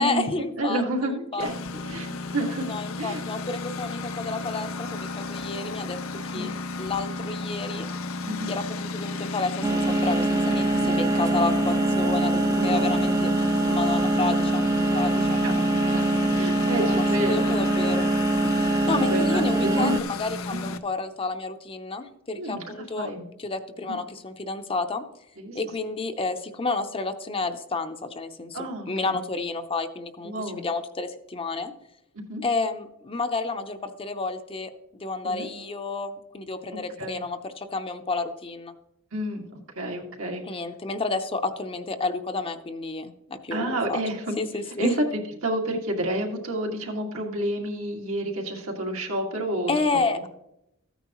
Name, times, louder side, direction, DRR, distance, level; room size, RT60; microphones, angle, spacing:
voice 1, 0.0-0.8 1.3-1.8 2.7-6.0 6.3-6.5 6.8-7.9 8.5-13.3 13.7-14.6 14.9-15.4 16.9-18.1 18.4-18.5 18.9-23.1 23.4-25.0 25.5-28.6 28.9-31.7 32.4-34.7 35.0-38.7 40.4-44.1 44.4-44.9 49.7-50.3, left 3 dB, 25° left, 8 dB, 0.7 m, -30 dB
voice 2, 0.6-1.5 1.8-3.2 6.3-6.5 8.2-8.5 12.5-13.3 15.3-15.5 15.9-16.0 16.3-17.6 18.9-20.0 20.6-20.7 22.4-22.6 23.0-23.2 23.9-24.0 25.4-25.6 28.5-29.2 30.2-30.6 32.3-32.4 35.2-35.5 37.0-37.2 39.1-40.6 43.5-44.3 44.8-44.9 45.4-49.7 50.1-50.2, right 1 dB, 80° right, 0 dB, 2.1 m, -30 dB
Engine, 1.4-20.8, left 3 dB, 75° left, 0.7 m, -33 dB
sound 1, 9.6-20.0, right 2 dB, 15° right, 0.4 m, -23 dB
14.0 x 9.3 x 3.0 m, 0.82 s
head